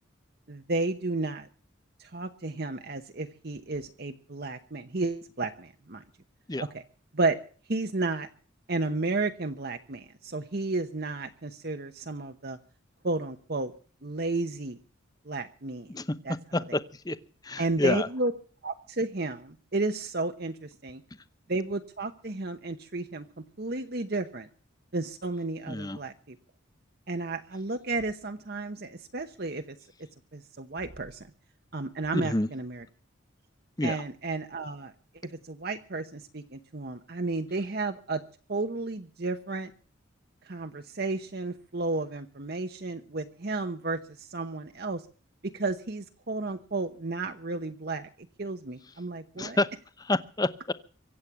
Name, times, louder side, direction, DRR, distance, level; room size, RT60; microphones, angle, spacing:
voice 1, 0.5-1.5 2.0-6.0 6.7-6.8 7.1-7.4 7.7-8.3 8.7-12.6 13.0-13.7 14.0-14.8 15.3-15.9 16.2-16.4 17.6-18.3 18.6-21.0 21.5-24.5 24.9-26.4 27.1-29.8 30.3-31.3 31.7-32.8 33.8-34.9 35.2-38.2 38.5-39.7 40.4-45.0 45.4-49.6, right 3 dB, 50° right, 7 dB, 1.0 m, -32 dB
voice 2, 16.5-17.2 17.4-18.1 25.7-26.0 32.1-32.5 33.8-34.0 49.4-49.7 50.0-50.7, left 2 dB, 20° left, 14 dB, 0.8 m, -28 dB
24.0 x 8.5 x 6.0 m, 0.43 s
head